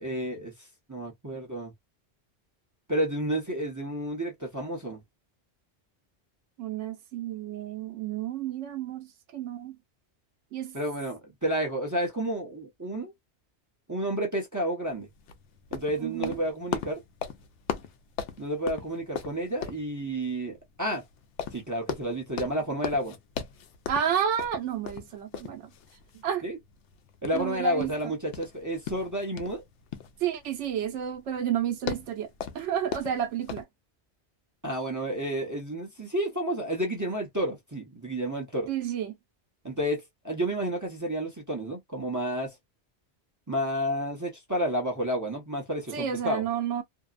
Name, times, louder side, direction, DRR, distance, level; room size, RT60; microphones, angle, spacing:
voice 1, 0.0-1.7 2.9-5.0 10.7-13.1 13.9-15.1 15.7-17.0 18.4-21.0 21.5-23.2 26.4-26.6 27.2-29.6 34.6-38.7 39.6-42.5 43.5-46.4, right 1 dB, 20° right, 0.7 m, -31 dB
voice 2, 6.6-9.1 9.3-9.8 10.5-10.8 16.0-16.4 23.9-25.7 26.2-26.5 27.3-27.9 30.2-32.3 32.5-33.7 38.7-39.2 45.9-46.8, right 9 dB, 85° right, 0.9 m, -31 dB
sound 1, 14.8-33.6, left 8 dB, 90° left, 0.9 m, -39 dB
2.7 x 2.0 x 2.3 m
omnidirectional pair, 1.2 m